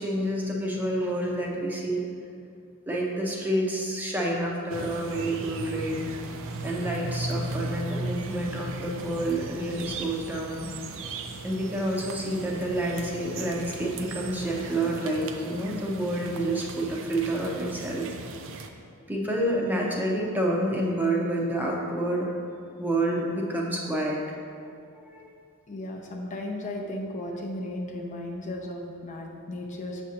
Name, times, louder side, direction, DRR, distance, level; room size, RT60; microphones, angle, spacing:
voice 1, 0.0-2.0 2.9-6.1 6.6-10.7 11.4-18.1 19.1-22.3 22.8-24.2 24.5-24.6 24.9-25.3, right 1 dB, 10° right, -2 dB, 0.6 m, -28 dB
sound 1, 4.7-18.7, right 3 dB, 60° right, 0.4 m, -37 dB
voice 2, 25.7-30.0, left 1 dB, 35° left, 0 dB, 0.5 m, -35 dB
6.6 x 6.1 x 2.8 m, 2.4 s
head